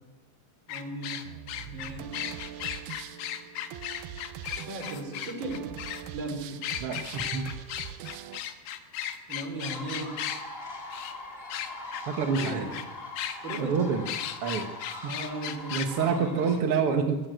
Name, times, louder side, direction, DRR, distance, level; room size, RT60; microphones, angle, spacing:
sound 1, 0.7-6.0 6.6-10.4 10.9-11.1 11.5-12.0 12.3-12.9 13.2-13.6 14.1-15.9, left 10 dB, 70° left, 2.8 m, -36 dB
voice 1, 0.7-1.3 1.6-2.1 4.5-5.7 6.1-6.6 9.3-10.3 12.4-12.7 13.4-13.9 15.1-16.5 16.9-17.1, right 2 dB, 30° right, 5 dB, 4.1 m, -37 dB
sound 2, 1.2-8.4, right 11 dB, 85° right, 2.9 m, -42 dB
voice 2, 6.8-7.5 12.1-12.7 13.6-14.1 14.4-14.7 15.0-15.1 15.7-17.2, right 6 dB, 65° right, 6 dB, 1.4 m, -27 dB
sound 3, 9.6-16.6, left 2 dB, 20° left, 1.8 m, -41 dB
22.5 x 15.5 x 9.1 m, 1.1 s
omnidirectional pair, 4.5 m